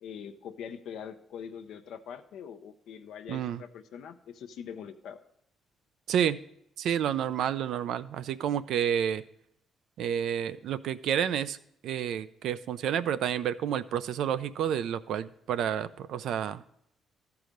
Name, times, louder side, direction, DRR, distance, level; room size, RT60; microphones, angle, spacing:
voice 1, 0.0-5.2, left 7 dB, 80° left, 7 dB, 0.5 m, -43 dB
voice 2, 3.3-3.6 6.1-6.4 6.8-9.2 10.0-11.6 11.8-16.6, right 9 dB, 80° right, 14 dB, 0.4 m, -30 dB
13.0 x 4.8 x 5.1 m, 0.73 s
cardioid pair, 90°, 0 cm